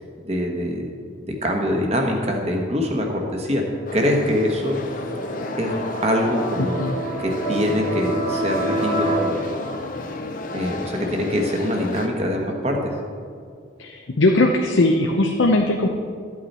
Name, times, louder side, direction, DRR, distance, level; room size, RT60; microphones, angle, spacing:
voice 1, 0.2-0.9 1.2-3.6 3.9-4.8 5.6-5.8 6.0-6.9 7.2-9.4 10.5-12.9, equal, 35° right, 1 dB, 1.3 m, -24 dB
sound 1, 3.6-9.2, right 1 dB, 80° right, 2.8 m, -29 dB
sound 2, 3.9-12.1, left 2 dB, 45° left, 0.7 m, -31 dB
voice 2, 13.8-15.9, left 2 dB, 80° left, 2 dB, 0.7 m, -19 dB
13.0 x 8.6 x 4.3 m, 2.2 s
head